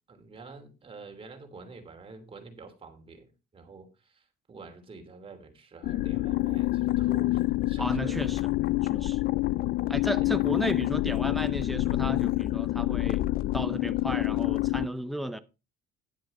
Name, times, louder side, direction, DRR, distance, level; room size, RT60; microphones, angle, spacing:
voice 1, 0.1-7.4 7.7-8.2 9.0-9.1, right 4 dB, 35° right, 2.9 m, -47 dB
sound 1, 5.8-14.9, left 18 dB, 60° left, 0.4 m, -27 dB
voice 2, 7.8-8.5 8.9-9.2 9.9-13.3 13.5-15.4, right 1 dB, ahead, 0.6 m, -34 dB
10.5 x 7.8 x 4.3 m
cardioid pair, 110°, 17 cm